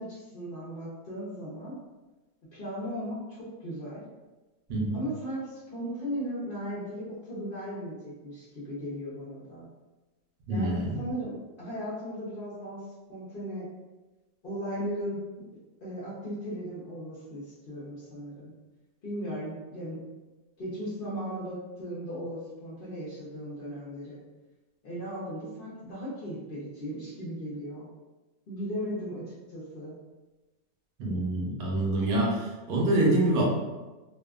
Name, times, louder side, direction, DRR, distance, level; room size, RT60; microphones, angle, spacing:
voice 1, 0.0-1.8 2.5-4.0 4.9-9.7 10.5-12.8 13.1-13.7 14.4-15.2 15.8-18.5 19.0-20.0 20.6-24.2 24.8-27.9 28.5-29.9, equal, 50° left, -7 dB, 0.6 m, -37 dB
voice 2, 10.5-11.0 31.0-33.4, right 1 dB, 70° right, -2 dB, 1.1 m, -26 dB
2.7 x 2.3 x 2.3 m, 1.1 s
omnidirectional pair, 1.8 m